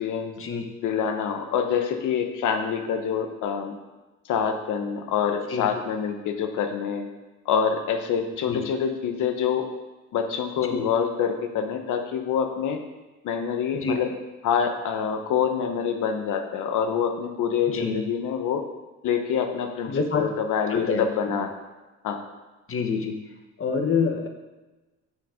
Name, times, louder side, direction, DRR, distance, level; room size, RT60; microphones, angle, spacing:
voice 1, 0.0-0.3 0.8-3.8 4.3-7.1 7.5-9.7 10.1-12.8 13.2-14.1 14.4-18.6 19.0-21.5 22.0-22.2, left 7 dB, 80° left, 6 dB, 1.0 m, -26 dB
voice 2, 17.7-18.0 19.8-20.3 20.7-21.1 22.7-23.1 23.6-24.3, left 5 dB, 45° left, 4 dB, 1.1 m, -26 dB
6.4 x 5.8 x 5.0 m, 1.2 s
cardioid pair, 90°, 30 cm